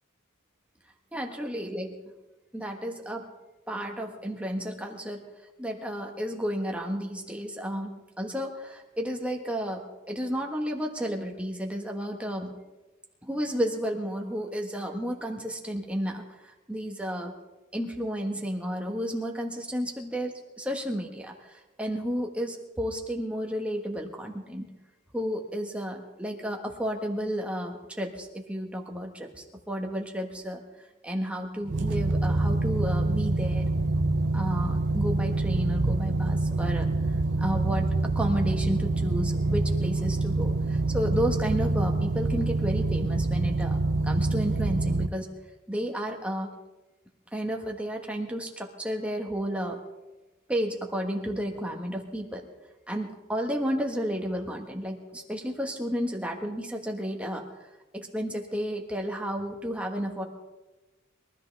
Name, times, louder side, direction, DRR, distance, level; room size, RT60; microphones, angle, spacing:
voice 1, 1.1-1.8 2.5-3.2 3.7-5.2 5.6-12.5 13.2-17.3 17.7-24.7 25.1-30.6 31.0-33.7 34.3-36.9 37.4-37.9 38.1-45.3 45.7-46.5 47.3-49.8 50.5-52.5 52.9-57.4 57.9-60.2, equal, 5° right, 2 dB, 1.4 m, -32 dB
sound 1, 31.7-45.1, right 2 dB, 55° right, 0.7 m, -26 dB
22.5 x 13.5 x 3.5 m, 1.1 s
head